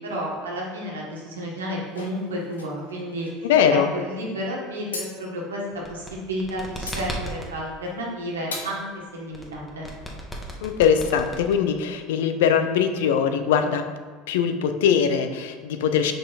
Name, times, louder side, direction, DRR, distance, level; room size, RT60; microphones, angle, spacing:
voice 1, 0.0-3.5 3.9-5.6 5.9-8.9 9.1-9.9, equal, 85° right, -2 dB, 1.6 m, -31 dB
sound 1, 1.9-3.3 4.9-5.1 6.7-7.0 7.8-8.0 8.5-8.7, left 3 dB, 90° left, 1.1 m, -37 dB
voice 2, 3.4-3.9 10.6-13.9 14.3-16.1, left 7 dB, 75° left, 8 dB, 0.6 m, -21 dB
sound 2, 5.7-7.5 9.3-11.9, equal, 10° left, 1.4 m, -35 dB
5.6 x 5.5 x 4.2 m, 1.4 s
hypercardioid pair, 75°, 0 cm